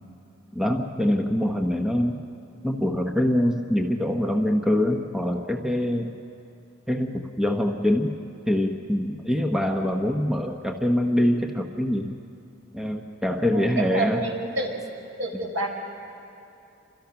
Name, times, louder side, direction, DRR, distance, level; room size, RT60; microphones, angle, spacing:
voice 1, 0.5-2.2 2.6-6.1 6.9-8.2 8.5-12.1 12.7-14.3, left 1 dB, ahead, 2 dB, 1.0 m, -24 dB
voice 2, 13.5-14.8 15.2-15.7, right 2 dB, 75° right, 1 dB, 4.8 m, -28 dB
30.0 x 26.0 x 5.9 m, 2.7 s
head